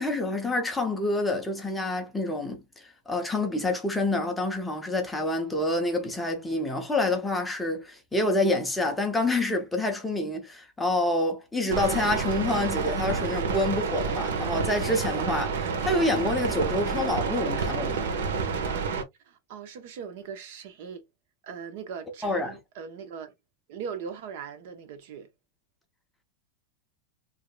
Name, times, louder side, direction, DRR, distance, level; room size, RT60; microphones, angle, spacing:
voice 1, 0.0-2.6 3.1-18.0 22.2-22.6, left 2 dB, 5° left, 0.7 m, -27 dB
sound 1, 11.7-19.0, right 5 dB, 85° right, 1.1 m, -29 dB
voice 2, 19.3-21.0 21.4-23.3 23.7-25.3, right 6 dB, 50° right, 0.8 m, -39 dB
5.0 x 2.9 x 2.3 m
supercardioid pair, 175°, 0 cm